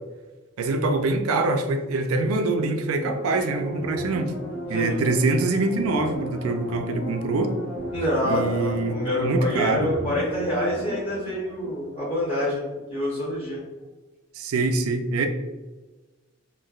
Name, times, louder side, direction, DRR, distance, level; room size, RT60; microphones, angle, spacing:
voice 1, 0.6-4.3 4.7-7.5 8.2-9.9 14.3-15.3, right 2 dB, 80° right, 6 dB, 0.4 m, -24 dB
sound 1, 3.0-12.4 12.8-12.9, equal, 70° left, 0.6 m, -35 dB
voice 2, 7.9-12.6 12.9-13.6, left 1 dB, 25° left, -8 dB, 0.7 m, -27 dB
3.1 x 2.5 x 2.3 m, 1.2 s
head